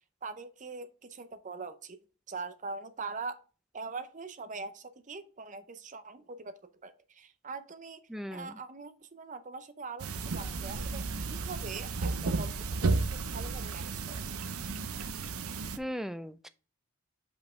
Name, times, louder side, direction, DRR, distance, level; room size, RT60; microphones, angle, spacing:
voice 1, 0.2-2.0 2.3-3.4 3.7-8.0 8.3-14.2, right 4 dB, 35° right, 0.7 m, -42 dB
voice 2, 8.1-8.6 15.8-16.5, equal, ahead, 0.3 m, -38 dB
sound 1, 10.0-15.8, right 3 dB, 80° right, 0.7 m, -33 dB
5.4 x 5.1 x 4.3 m
head